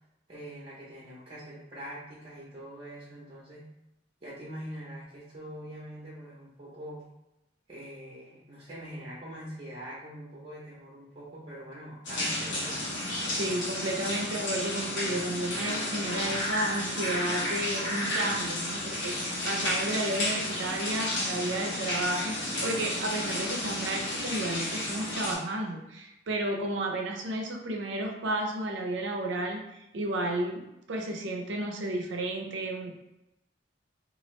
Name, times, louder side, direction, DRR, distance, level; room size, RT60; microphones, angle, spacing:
voice 1, 0.3-3.7 4.2-7.0 7.7-12.8, equal, 30° right, -6 dB, 0.6 m, -43 dB
sound 1, 12.0-25.3, left 1 dB, 80° left, 0.9 m, -32 dB
voice 2, 13.4-32.9, right 1 dB, 75° right, 2 dB, 0.5 m, -32 dB
2.9 x 2.4 x 3.1 m, 0.90 s
head